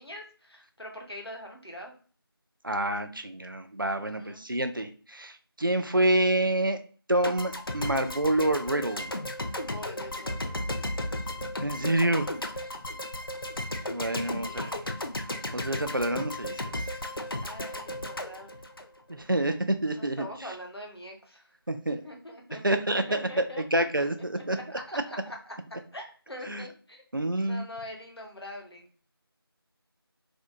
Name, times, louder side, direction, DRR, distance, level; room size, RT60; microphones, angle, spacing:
voice 1, 0.0-2.0 4.0-4.5 9.5-10.4 12.9-13.0 14.1-14.8 17.4-18.6 19.9-21.5 22.0-24.1 24.5-25.6 25.9-27.0 27.4-28.9, left 1 dB, 80° left, 1 dB, 0.9 m, -43 dB
voice 2, 2.6-5.3 5.6-6.8 7.1-9.1 11.6-12.3 13.9-14.7 15.5-16.8 19.1-20.3 21.7-22.0 22.6-24.6 26.5-26.6 27.1-27.7, right 1 dB, 60° right, 8 dB, 0.4 m, -27 dB
sound 1, 7.2-19.4, left 1 dB, 65° left, 0.4 m, -35 dB
2.6 x 2.1 x 2.6 m, 0.40 s
figure-of-eight pair, 180°, 13 cm